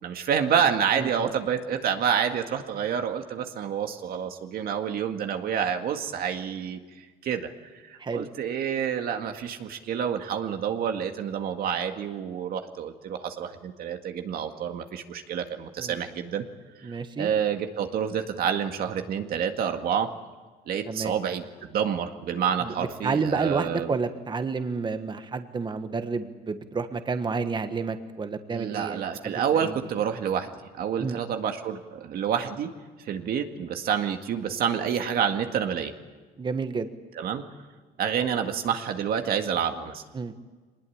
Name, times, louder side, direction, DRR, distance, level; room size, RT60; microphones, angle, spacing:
voice 1, 0.0-6.8 7.2-7.5 7.8-16.4 16.8-20.1 20.7-24.0 28.5-30.5 30.8-32.7 33.0-35.9 37.2-37.5 38.0-40.0, right 8 dB, 65° right, 5 dB, 2.0 m, -28 dB
voice 2, 1.0-1.3 8.0-8.3 15.8-15.9 16.8-17.3 20.9-21.1 22.6-29.3 29.6-29.8 31.0-31.2 36.4-36.9 40.1-40.3, right 4 dB, 25° right, 8 dB, 1.5 m, -30 dB
24.0 x 20.5 x 8.8 m, 1.3 s
cardioid pair, 110°, 17 cm